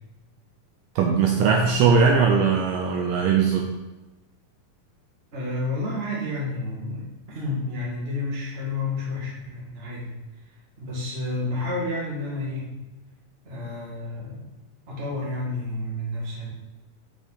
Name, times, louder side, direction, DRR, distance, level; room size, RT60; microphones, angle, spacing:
voice 1, 1.0-3.7, right 5 dB, 80° right, 1 dB, 2.0 m, -20 dB
voice 2, 5.3-10.1 10.8-12.8 13.4-14.5 14.9-16.5, left 2 dB, 25° right, -6 dB, 1.3 m, -30 dB
7.0 x 4.9 x 4.1 m, 1.1 s
omnidirectional pair, 4.2 m